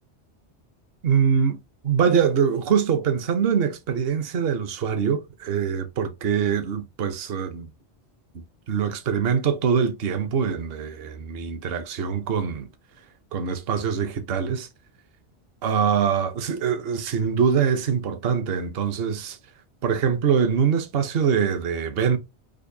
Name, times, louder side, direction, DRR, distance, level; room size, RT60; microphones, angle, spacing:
voice 1, 1.0-1.6 1.8-7.7 8.3-12.7 13.3-14.7 15.6-19.4 19.8-22.2, right 7 dB, 60° right, 0.8 m, -23 dB
5.1 x 2.1 x 2.6 m
omnidirectional pair, 1.2 m